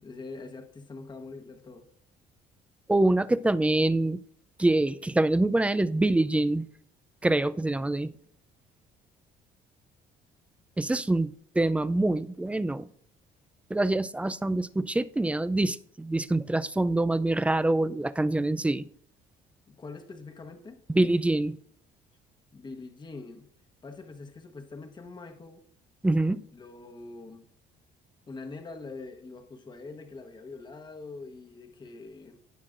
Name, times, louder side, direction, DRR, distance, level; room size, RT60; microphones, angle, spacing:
voice 1, 0.0-1.8 14.2-14.3 19.7-20.8 22.5-23.5 23.8-25.6 26.5-27.5 28.3-32.4, left 3 dB, 25° left, 1.1 m, -44 dB
voice 2, 2.9-4.2 4.6-6.7 7.2-8.1 10.8-12.9 13.7-18.8 20.9-21.6 26.0-26.4, right 2 dB, 5° right, 0.3 m, -25 dB
17.5 x 5.8 x 2.5 m
cardioid pair, 110°, 17 cm